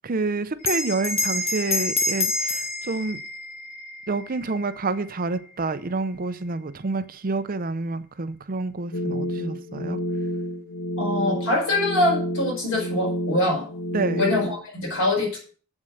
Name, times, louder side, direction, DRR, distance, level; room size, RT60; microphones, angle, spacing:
voice 1, 0.0-3.2 4.1-10.0 13.9-14.3, right 3 dB, 40° right, 0.6 m, -28 dB
Bell, 0.6-5.5, left 2 dB, 30° left, 1.6 m, -28 dB
sound 1, 8.9-14.6, equal, 80° left, 1.5 m, -29 dB
voice 2, 11.0-13.7 14.2-15.4, left 2 dB, 60° left, 4.8 m, -24 dB
7.7 x 7.2 x 6.4 m
head